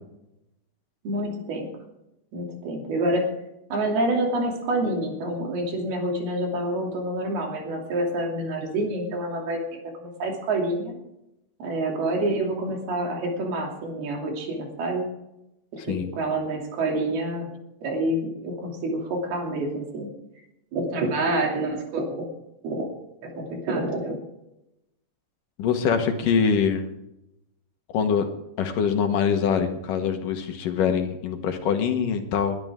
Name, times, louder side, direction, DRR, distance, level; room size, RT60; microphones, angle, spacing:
voice 1, 1.0-1.7 2.3-3.3 3.7-11.0 11.6-15.1 15.7-17.5 17.8-20.1 20.7-22.2 22.6-22.9 23.2-24.2, right 1 dB, 90° right, 1 dB, 4.8 m, -27 dB
voice 2, 25.6-26.8 27.9-28.3 28.6-32.6, left 7 dB, 65° left, 6 dB, 2.7 m, -24 dB
21.0 x 11.5 x 3.7 m, 0.87 s
omnidirectional pair, 4.3 m